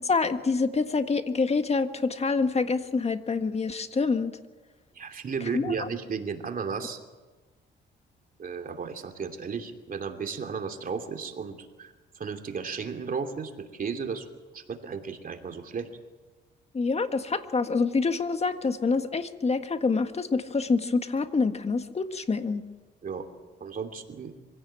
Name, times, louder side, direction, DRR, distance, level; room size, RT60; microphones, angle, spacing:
voice 1, 0.1-4.4 5.5-5.7 16.7-22.6, left 4 dB, 30° left, 8 dB, 1.7 m, -26 dB
voice 2, 4.9-7.0 8.4-14.3 14.5-15.9 23.0-23.2 23.6-24.3, right 5 dB, 45° right, 5 dB, 2.9 m, -34 dB
24.5 x 16.5 x 8.9 m, 1.3 s
cardioid pair, 90°, 20 cm